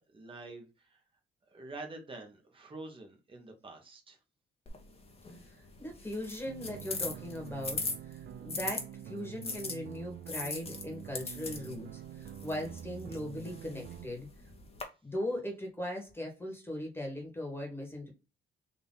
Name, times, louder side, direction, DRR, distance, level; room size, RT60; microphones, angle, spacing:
voice 1, 0.1-1.0 1.5-4.2, right 2 dB, 25° right, 1.4 m, -47 dB
sound 1, 4.7-8.8 9.4-14.8, left 3 dB, 30° left, 1.2 m, -41 dB
voice 2, 5.4-14.3 15.0-18.1, left 1 dB, 10° left, 1.7 m, -39 dB
sound 2, 6.4-14.1, right 11 dB, 55° right, 0.4 m, -46 dB
3.9 x 2.8 x 4.0 m
cardioid pair, 90°, 20 cm